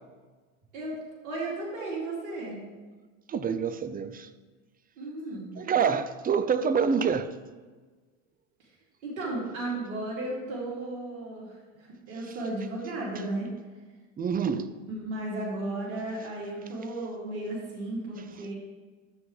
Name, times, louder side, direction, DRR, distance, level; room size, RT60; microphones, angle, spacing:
voice 1, 1.2-2.6 5.0-5.5 9.0-11.5 11.8-13.5 14.9-18.5, right 2 dB, 90° right, -5 dB, 2.8 m, -34 dB
voice 2, 3.3-4.3 5.6-7.3 14.2-14.7, right 6 dB, 20° right, 12 dB, 0.5 m, -26 dB
12.5 x 7.6 x 3.2 m, 1.4 s
supercardioid pair, 95°, 40 cm